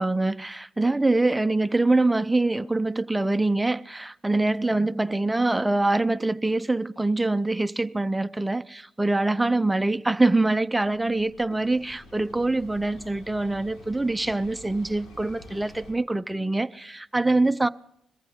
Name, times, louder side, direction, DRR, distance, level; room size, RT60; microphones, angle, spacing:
voice 1, 0.0-17.7, right 2 dB, 10° right, 0.5 m, -24 dB
sound 1, 10.8-15.9, left 1 dB, 65° left, 4.2 m, -48 dB
22.0 x 14.5 x 3.6 m
cardioid pair, 90°, 0 cm